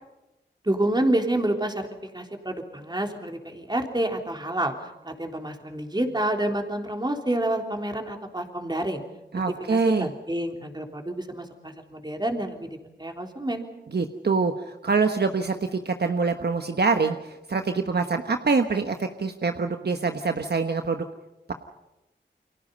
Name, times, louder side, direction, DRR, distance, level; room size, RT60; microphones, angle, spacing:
voice 1, 0.6-1.9 2.1-4.7 5.0-9.0 9.7-12.7 13.0-13.7, right 1 dB, 25° right, 3 dB, 3.5 m, -28 dB
voice 2, 9.3-10.1 13.9-21.0, right 4 dB, 60° right, 6 dB, 1.3 m, -25 dB
29.5 x 24.0 x 5.5 m, 0.96 s
wide cardioid pair, 55°, 19 cm